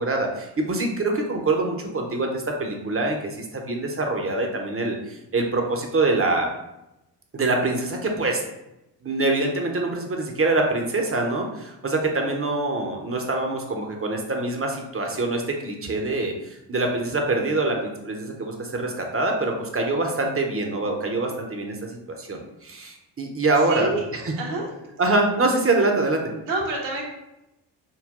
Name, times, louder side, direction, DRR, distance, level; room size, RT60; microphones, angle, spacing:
voice 1, 0.0-6.5 7.3-8.4 9.0-24.3 25.0-26.2, right 2 dB, 25° right, 2 dB, 1.0 m, -25 dB
voice 2, 23.7-24.0 24.4-24.7 26.5-27.0, right 3 dB, 65° right, -2 dB, 1.4 m, -27 dB
5.6 x 2.2 x 3.7 m, 0.90 s
hypercardioid pair, 45°, 50 cm